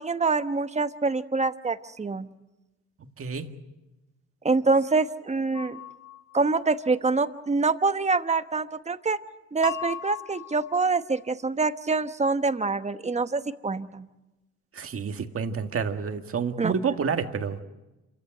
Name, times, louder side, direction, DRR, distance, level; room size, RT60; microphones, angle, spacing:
voice 1, 0.0-2.3 4.4-5.8 6.3-9.2 9.5-14.1 16.6-16.7, right 4 dB, 20° right, 10 dB, 1.1 m, -25 dB
voice 2, 3.0-3.4 14.7-17.6, right 6 dB, 50° right, 6 dB, 1.9 m, -29 dB
sound 1, 5.5-6.7 9.6-11.0, left 11 dB, 65° left, 1.7 m, -38 dB
27.0 x 15.0 x 9.1 m, 1.1 s
cardioid pair, 90°, 30 cm